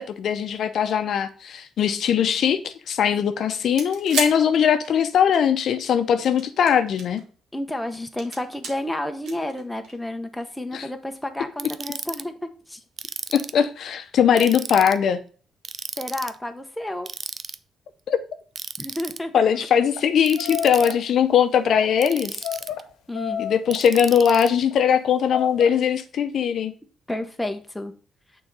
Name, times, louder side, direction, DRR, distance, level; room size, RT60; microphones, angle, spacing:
voice 1, 0.0-7.2 10.7-10.9 13.3-15.2 18.1-18.2 19.3-22.4 23.4-26.7, left 8 dB, 65° left, 0.6 m, -20 dB
sound 1, 3.6-5.4 6.2-7.2 7.7-8.7 9.2-10.1 11.1-11.2, right 4 dB, 75° right, 1.5 m, -32 dB
voice 2, 7.5-12.8 16.0-17.1 18.8-19.7 23.1-23.4 27.1-27.9, left 1 dB, 5° left, 0.8 m, -31 dB
Ratchet pawl, 11.6-12.2 13.0-13.6 14.4-15.0 15.6-16.3 17.1-17.6 18.6-19.2 20.2-20.9 22.0-22.8 23.7-24.5, right 5 dB, 40° right, 0.4 m, -34 dB
sound 2, 20.0-20.1 20.4-21.0 21.7-21.9 22.4-22.8 23.1-23.8 24.5-24.8 25.3-25.7, left 9 dB, 90° left, 0.9 m, -31 dB
6.3 x 3.9 x 4.6 m
cardioid pair, 90°, 0 cm